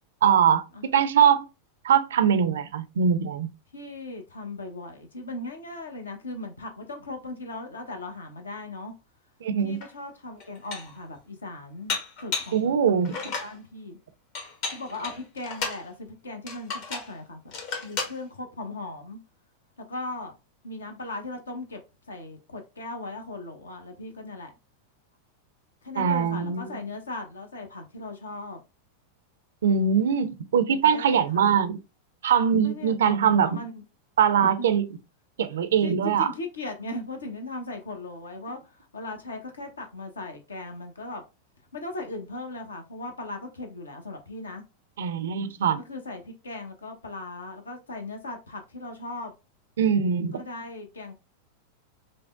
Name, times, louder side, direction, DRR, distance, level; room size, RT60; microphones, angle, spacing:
voice 1, 0.2-0.6 0.9-1.5 1.8-3.5 9.4-9.8 12.5-13.2 26.0-26.6 29.6-31.8 32.2-33.6 34.2-34.8 35.4-36.3 45.0-45.8 49.8-50.3, right 7 dB, 60° right, 0.4 m, -22 dB
voice 2, 3.7-8.9 9.6-14.0 14.7-17.5 17.8-19.2 19.9-20.3 20.6-21.8 22.1-24.5 25.8-28.6 30.7-31.4 32.6-33.8 34.4-34.7 35.8-41.2 41.7-44.6 45.9-49.3 50.3-51.1, left 2 dB, 70° left, 0.8 m, -38 dB
Dishes pots and pans, 9.8-9.9 10.4-11.0 11.9-12.6 13.1-13.6 14.4-15.8 16.5-17.1 17.5-18.2, left 4 dB, 45° left, 0.9 m, -33 dB
5.1 x 2.1 x 2.4 m
figure-of-eight pair, 90°, 0 cm